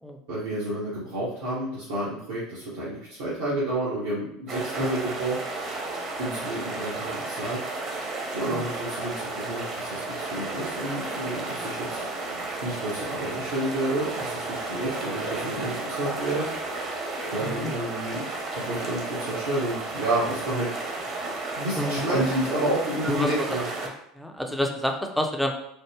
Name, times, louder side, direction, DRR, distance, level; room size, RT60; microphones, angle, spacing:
voice 1, 0.3-5.4 6.2-7.6 8.3-12.1 12.6-16.5 17.3-18.2 18.5-20.7 21.6-23.6, right 1 dB, 70° right, -9 dB, 0.9 m, -30 dB
sound 1, 4.5-23.9, right 3 dB, 40° right, 0.9 m, -33 dB
sound 2, 10.4-18.4, left 1 dB, 90° left, 0.9 m, -44 dB
voice 2, 21.7-22.5 23.0-23.3 24.2-25.5, equal, ahead, 2 dB, 0.5 m, -28 dB
3.1 x 2.0 x 3.5 m, 0.74 s
figure-of-eight pair, 70°, 0 cm